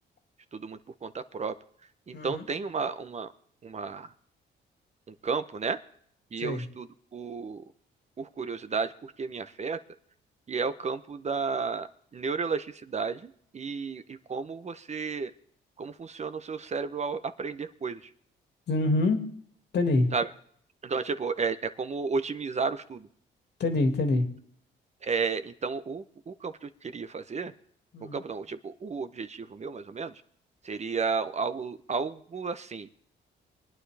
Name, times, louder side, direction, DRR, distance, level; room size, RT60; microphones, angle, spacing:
voice 1, 0.5-1.5 2.1-3.3 3.6-4.1 5.2-5.8 6.3-6.9 7.1-7.6 8.2-9.8 10.5-11.9 12.1-15.3 15.8-18.0 20.1-20.3 20.8-23.1 25.0-27.5 28.1-30.1 30.6-32.9, right 5 dB, 35° right, 11 dB, 0.8 m, -32 dB
voice 2, 2.1-2.5 6.4-6.6 18.7-19.2 19.7-20.1 23.6-24.3 27.9-28.2, left 2 dB, 60° left, 5 dB, 2.2 m, -25 dB
23.5 x 9.5 x 3.4 m, 0.62 s
cardioid pair, 90°, 20 cm